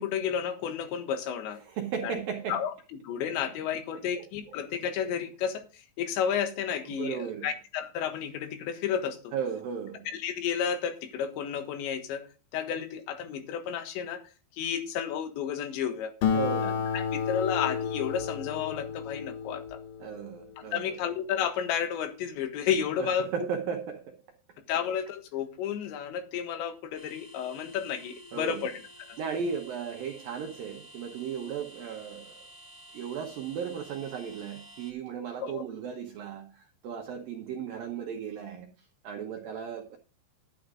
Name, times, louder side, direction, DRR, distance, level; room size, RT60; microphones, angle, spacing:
voice 1, 0.0-1.6 2.0-2.1 2.5-2.7 3.0-9.3 10.1-14.2 14.6-16.1 16.6-19.8 20.6-23.5 24.7-28.8 29.1-29.2 35.4-35.6, left 8 dB, 75° left, 3.6 m, -32 dB
voice 2, 1.6-2.6 3.9-4.3 6.9-7.5 9.3-10.1 16.3-16.9 20.0-21.0 23.0-24.2 28.3-28.7 29.2-32.5 32.9-38.7 39.0-40.0, right 7 dB, 75° right, 2.1 m, -36 dB
Acoustic guitar, 16.2-21.1, left 7 dB, 60° left, 2.9 m, -32 dB
sound 1, 26.9-34.9, equal, 10° right, 2.4 m, -51 dB
11.5 x 9.3 x 3.7 m
omnidirectional pair, 5.4 m